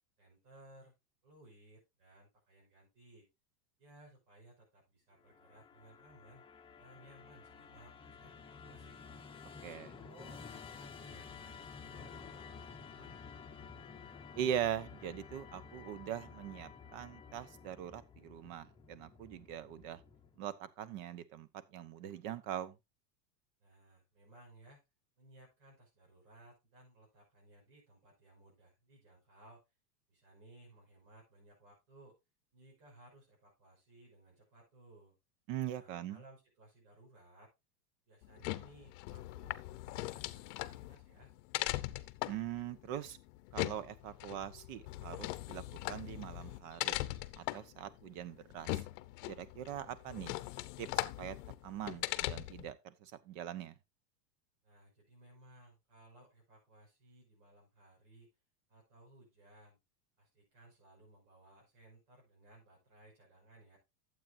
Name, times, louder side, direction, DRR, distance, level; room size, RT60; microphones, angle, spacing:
voice 1, 0.2-0.9 1.2-3.3 3.8-6.4 6.8-9.0 9.9-13.1 23.6-24.8 25.2-29.6 30.1-32.2 32.5-35.1 35.7-37.5 38.1-41.3 54.6-58.3 58.7-59.8 60.2-63.8, right 1 dB, 70° right, 6.0 m, -61 dB
Musical instrument, 5.2-20.5, left 5 dB, 10° left, 0.8 m, -52 dB
voice 2, 9.6-9.9 14.3-20.0 20.4-22.8 35.5-36.2 42.3-43.2 43.5-47.0 47.4-48.8 49.3-50.4 50.8-51.4 51.6-53.7, right 10 dB, 55° right, 1.1 m, -42 dB
sound 1, 38.2-52.7, left 18 dB, 50° left, 0.7 m, -40 dB
12.0 x 7.9 x 2.6 m
supercardioid pair, 130°, 49 cm